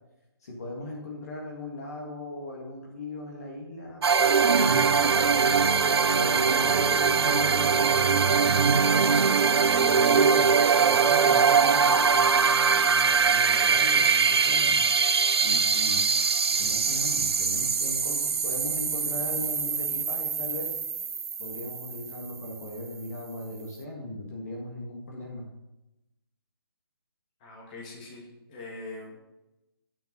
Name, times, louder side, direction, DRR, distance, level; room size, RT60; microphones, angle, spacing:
voice 1, 0.4-5.4 6.2-8.5 9.8-14.8 15.4-16.1 16.5-20.8 21.4-25.5, left 1 dB, 40° left, -1 dB, 1.8 m, -38 dB
sound 1, 4.0-22.5, right 5 dB, 85° right, 0.7 m, -22 dB
voice 2, 27.4-29.2, left 2 dB, 20° left, -4 dB, 2.0 m, -42 dB
9.1 x 5.2 x 6.8 m, 0.96 s
hypercardioid pair, 175°, 13 cm